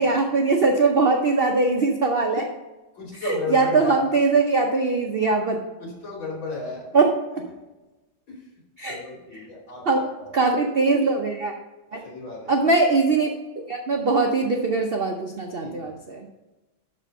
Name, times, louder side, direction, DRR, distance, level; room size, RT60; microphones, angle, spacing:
voice 1, 0.0-2.4 3.2-5.6 6.9-7.1 8.8-9.0 9.9-10.0 10.3-11.5 11.9-12.0 12.5-13.3 13.7-16.3, right 3 dB, 70° right, 2 dB, 0.5 m, -21 dB
voice 2, 2.9-4.1 5.8-6.9 8.3-8.5 8.9-10.4 12.0-12.7 15.6-15.9, left 3 dB, 75° left, -3 dB, 3.7 m, -34 dB
11.5 x 4.3 x 5.5 m, 1.1 s
omnidirectional pair, 2.1 m